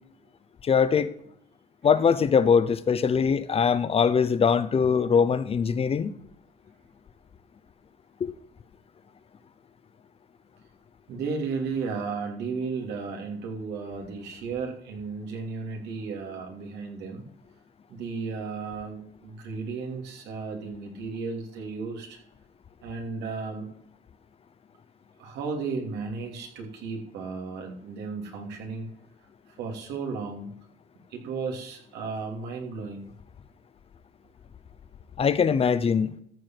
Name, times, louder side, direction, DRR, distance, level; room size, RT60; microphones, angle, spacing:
voice 1, 0.6-1.1 1.8-6.1 8.2-8.3 35.2-36.1, left 6 dB, 35° left, 0.8 m, -22 dB
voice 2, 11.1-17.2 17.9-22.2 22.8-23.7 25.2-28.9 29.6-30.5 31.1-33.1, right 4 dB, 85° right, 3.0 m, -34 dB
14.0 x 4.8 x 7.8 m
cardioid pair, 110°, 17 cm